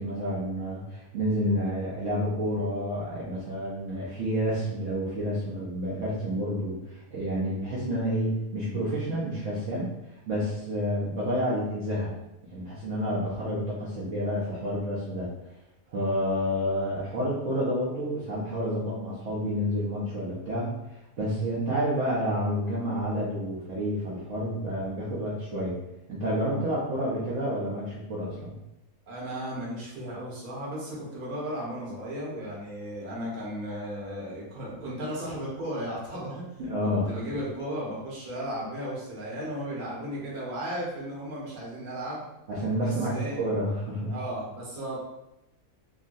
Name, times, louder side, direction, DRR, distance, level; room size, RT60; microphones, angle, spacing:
voice 1, 0.0-9.9 10.3-12.1 12.5-15.3 15.9-20.7 21.2-25.8 26.1-28.5 36.6-37.1 42.5-44.1, equal, 60° right, -8 dB, 1.0 m, -29 dB
voice 2, 29.1-36.4 37.1-42.2 42.8-43.4 44.1-45.0, equal, 40° right, -7 dB, 1.0 m, -35 dB
3.7 x 2.1 x 2.6 m, 0.90 s
omnidirectional pair, 1.6 m